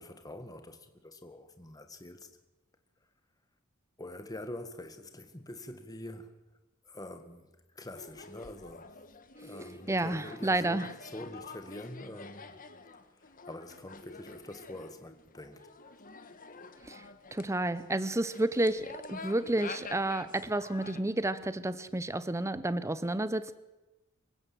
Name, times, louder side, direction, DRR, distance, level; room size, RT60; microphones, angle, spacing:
voice 1, 0.0-2.3 4.0-6.3 6.9-8.9 9.4-12.6 13.1-15.7, left 1 dB, 15° left, 1.8 m, -45 dB
sound 1, 8.0-21.0, left 4 dB, 40° left, 1.4 m, -48 dB
voice 2, 9.9-10.9 16.8-17.0 17.3-23.5, right 1 dB, 15° right, 0.7 m, -31 dB
25.5 x 16.0 x 7.9 m
head